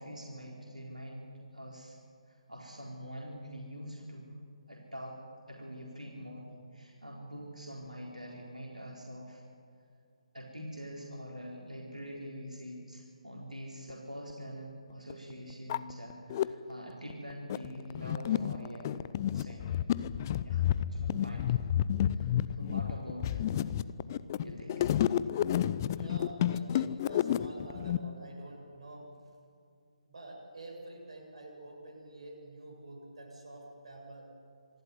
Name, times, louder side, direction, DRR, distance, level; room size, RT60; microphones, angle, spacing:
voice 1, 0.0-2.0 2.3-4.4 4.7-5.2 5.5-9.4 10.3-19.0 19.3-19.8 20.4-21.4 22.1-23.5 24.4-24.9, equal, 85° right, -2 dB, 4.0 m, -45 dB
sound 1, 14.3-14.4 15.1-15.2 15.5-16.5 17.1-28.0, left 11 dB, 30° left, 0.6 m, -30 dB
voice 2, 26.0-29.1 30.0-34.3, right 2 dB, 55° right, 0 dB, 7.5 m, -48 dB
26.5 x 12.5 x 9.6 m, 2.3 s
figure-of-eight pair, 145°, 4 cm